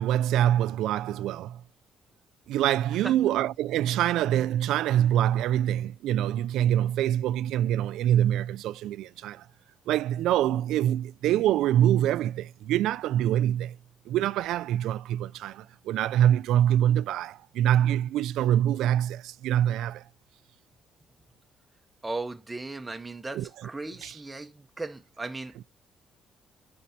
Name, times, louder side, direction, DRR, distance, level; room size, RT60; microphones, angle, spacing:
voice 1, 0.0-1.6 2.5-9.5 9.9-13.8 14.1-20.0 23.3-23.5 24.0-24.2, right 11 dB, 90° right, 0.3 m, -25 dB
voice 2, 22.0-25.5, right 2 dB, 10° right, 0.6 m, -37 dB
11.0 x 4.4 x 2.7 m
cardioid pair, 145°, 0 cm